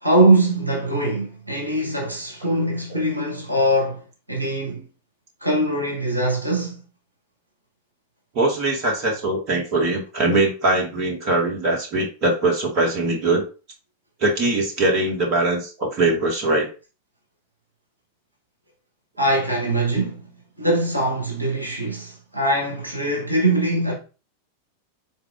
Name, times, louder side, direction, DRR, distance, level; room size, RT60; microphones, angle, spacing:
voice 1, 0.0-4.9 5.4-6.8 19.2-20.2 20.6-24.0, right 1 dB, 85° right, 1.0 m, -22 dB
voice 2, 8.3-13.4 14.2-16.7, right 2 dB, 40° right, 1.5 m, -21 dB
4.3 x 3.8 x 2.4 m
figure-of-eight pair, 90°, 0 cm